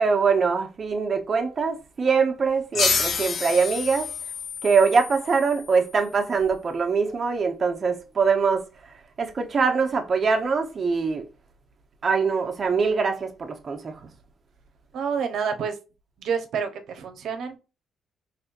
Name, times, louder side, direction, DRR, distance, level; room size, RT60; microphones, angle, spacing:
voice 1, 0.0-4.1 4.6-8.7 9.2-11.2 12.0-14.0, right 5 dB, 40° right, 1.0 m, -23 dB
sound 1, 2.7-6.0, left 5 dB, 55° left, 0.8 m, -28 dB
voice 2, 14.9-15.8 16.2-17.6, right 6 dB, 70° right, 1.0 m, -28 dB
4.4 x 3.4 x 2.6 m
cardioid pair, 90°, 0 cm